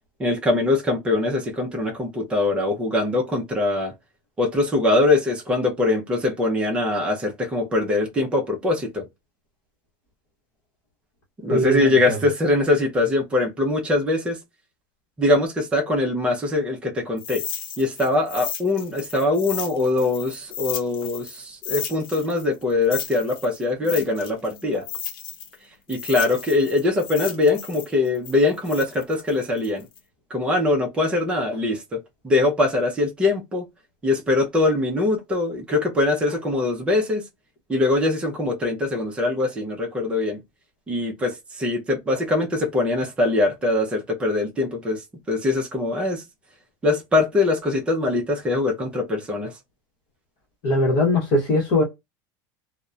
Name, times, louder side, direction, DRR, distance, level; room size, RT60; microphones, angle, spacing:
voice 1, 0.2-3.9 4.4-9.1 11.4-14.4 15.2-17.4 17.8-24.9 25.9-29.9 30.3-33.6 34.0-37.2 37.7-40.4 40.9-45.0 45.3-46.2 46.8-49.5, left 2 dB, 10° right, 0.5 m, -22 dB
voice 2, 11.5-12.2 50.6-51.8, left 1 dB, 40° left, 0.9 m, -20 dB
sound 1, 17.2-21.4 21.6-25.6 25.9-30.0, left 8 dB, 90° left, 0.7 m, -34 dB
2.8 x 2.0 x 2.2 m
supercardioid pair, 175°, 12 cm